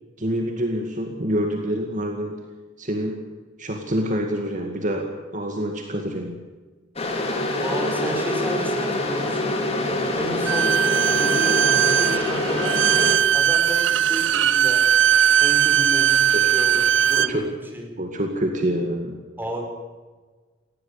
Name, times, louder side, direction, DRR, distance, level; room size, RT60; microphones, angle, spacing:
voice 1, 0.2-2.4 2.8-3.2 3.6-6.4 16.3-16.5 17.1-17.5 18.0-19.1, equal, 40° right, 3 dB, 2.1 m, -26 dB
sound 1, 7.0-13.1, left 2 dB, 30° left, 3.5 m, -25 dB
voice 2, 7.3-9.6 10.2-10.7 11.1-12.8 13.3-14.8 15.4-18.0 19.4-19.7, right 1 dB, 10° right, 1 dB, 4.8 m, -32 dB
Bowed string instrument, 10.4-17.3, right 9 dB, 70° right, 0.6 m, -19 dB
18.5 x 16.5 x 8.7 m, 1.4 s
head